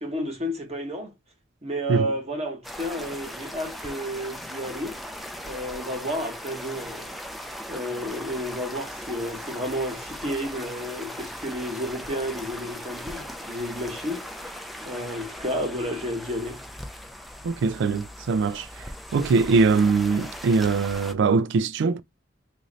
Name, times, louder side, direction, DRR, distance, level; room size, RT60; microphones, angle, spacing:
voice 1, 0.0-1.1 1.6-5.0 5.4-7.1 7.7-14.6 14.8-16.6, equal, 35° right, 1.1 m, -31 dB
sound 1, 2.6-21.1, equal, ahead, 0.4 m, -39 dB
voice 2, 17.4-18.7 19.1-22.0, right 4 dB, 65° right, 0.3 m, -22 dB
3.1 x 2.5 x 3.8 m
head